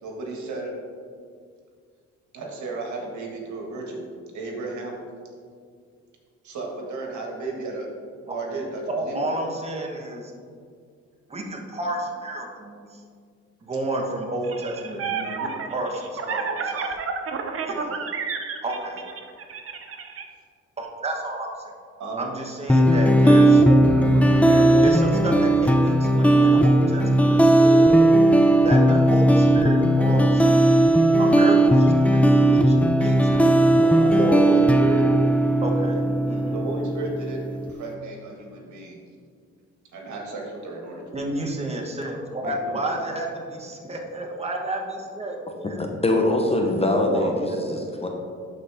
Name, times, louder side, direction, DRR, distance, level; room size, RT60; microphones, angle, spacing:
voice 1, 0.0-0.7 2.3-4.0 4.3-5.0 6.4-7.9 8.2-9.4 22.0-22.3 23.9-24.9 26.4-26.5 33.7-35.1 36.5-39.0 39.9-41.5 42.4-42.8, right 3 dB, 70° right, 0 dB, 1.7 m, -33 dB
voice 2, 8.9-10.3 11.3-13.0 13.6-17.0 17.6-18.0 18.6-19.0 20.8-21.7 22.2-23.9 24.8-28.1 28.6-33.5 34.2-34.7 35.6-36.6 41.1-45.8 47.0-47.8, right 1 dB, 20° right, 0 dB, 1.3 m, -31 dB
sound 1, 14.4-20.2, right 5 dB, 50° right, 0.8 m, -30 dB
sound 2, 22.7-37.7, right 1 dB, 5° left, 0.4 m, -17 dB
voice 3, 45.8-48.1, left 1 dB, 20° left, 2 dB, 0.9 m, -23 dB
11.5 x 4.2 x 3.5 m, 2.1 s
cardioid pair, 90°, 30 cm